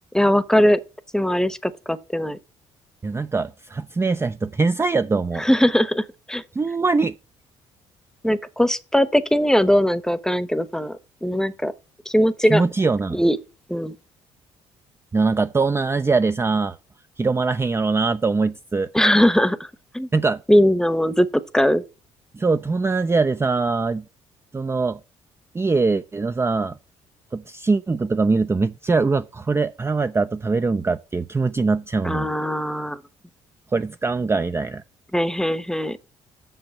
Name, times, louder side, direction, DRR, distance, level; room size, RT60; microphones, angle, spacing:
voice 1, 0.1-0.8 1.1-2.4 5.4-6.4 8.2-11.7 12.1-12.6 13.1-13.4 13.7-13.9 18.9-19.6 19.9-20.1 20.5-21.8 32.0-33.0 35.1-36.0, equal, 5° left, 0.9 m, -20 dB
voice 2, 3.0-5.4 6.5-7.1 12.4-13.2 15.1-16.8 17.2-18.9 20.1-20.4 22.3-24.0 24.5-25.0 25.5-26.8 27.3-32.3 33.7-34.8, right 4 dB, 20° right, 0.5 m, -22 dB
6.8 x 5.6 x 7.1 m
supercardioid pair, 60°, 13 cm